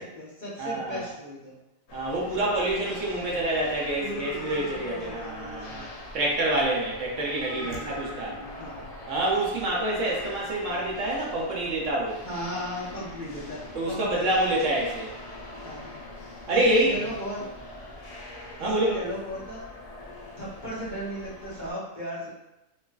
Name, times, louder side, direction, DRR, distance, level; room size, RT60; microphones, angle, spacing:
voice 1, 0.0-1.6 4.0-5.8 7.6-8.9 12.2-14.8 15.6-16.1 16.5-17.4 18.6-19.7 20.4-22.3, equal, 40° left, -9 dB, 1.0 m, -37 dB
voice 2, 0.6-1.0 1.9-5.9 6.1-8.4 9.1-12.2 13.7-15.1 16.5-17.0 18.6-19.0, right 1 dB, 70° right, -3 dB, 1.1 m, -27 dB
sound 1, 1.9-21.7, left 1 dB, 80° left, 0.3 m, -43 dB
3.2 x 3.1 x 2.3 m, 0.96 s
omnidirectional pair, 1.4 m